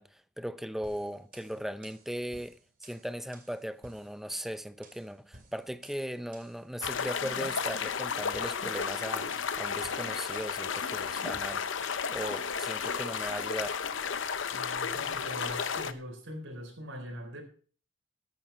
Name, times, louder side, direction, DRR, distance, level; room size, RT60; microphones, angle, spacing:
voice 1, 0.0-13.8, equal, ahead, 0.6 m, -38 dB
sound 1, 0.8-12.7, right 2 dB, 45° right, 2.7 m, -57 dB
sound 2, 6.8-15.9, left 6 dB, 70° left, 0.8 m, -33 dB
voice 2, 14.5-17.4, equal, 80° right, 4.0 m, -42 dB
14.0 x 9.0 x 4.4 m
head